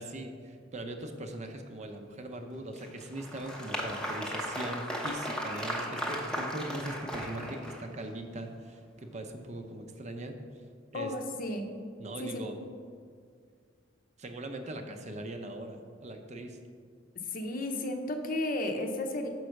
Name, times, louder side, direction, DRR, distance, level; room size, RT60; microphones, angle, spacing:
voice 1, 0.0-10.4 10.9-11.1 12.0-12.6 14.2-16.6, right 1 dB, 40° right, 5 dB, 0.6 m, -40 dB
Applause, 2.7-8.1, equal, 5° left, 0.7 m, -36 dB
voice 2, 10.9-11.7 12.2-12.4 17.3-19.3, left 1 dB, 50° left, 4 dB, 0.7 m, -33 dB
5.4 x 4.5 x 6.3 m, 2.1 s
head